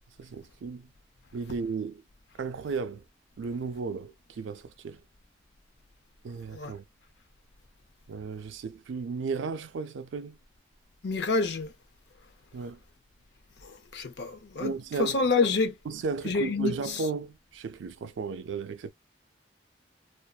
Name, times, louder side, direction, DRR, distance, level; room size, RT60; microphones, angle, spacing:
voice 1, 0.2-0.9 1.3-2.0 2.4-3.0 3.4-5.0 6.2-6.8 8.1-10.4 12.5-12.8 14.6-15.2 15.9-18.9, right 5 dB, 80° right, 0.4 m, -34 dB
voice 2, 11.0-11.7 13.6-14.7 15.0-15.8 16.2-17.0, left 4 dB, 60° left, 0.5 m, -28 dB
2.5 x 2.1 x 2.3 m
head